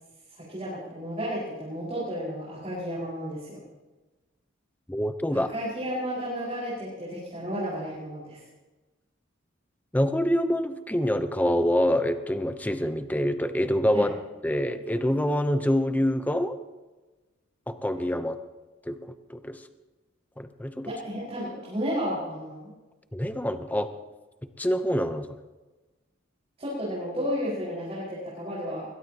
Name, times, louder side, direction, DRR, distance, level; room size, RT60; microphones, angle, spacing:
voice 1, 0.4-3.6 5.3-8.4 13.9-14.1 20.8-22.7 26.6-28.9, equal, 30° right, -8 dB, 5.1 m, -32 dB
voice 2, 4.9-5.5 9.9-14.1 14.4-16.6 17.7-18.4 18.9-19.0 19.3-19.6 20.4-20.9 23.1-23.9 24.6-25.3, equal, 10° left, 9 dB, 0.7 m, -26 dB
21.5 x 21.0 x 2.9 m, 1.2 s
head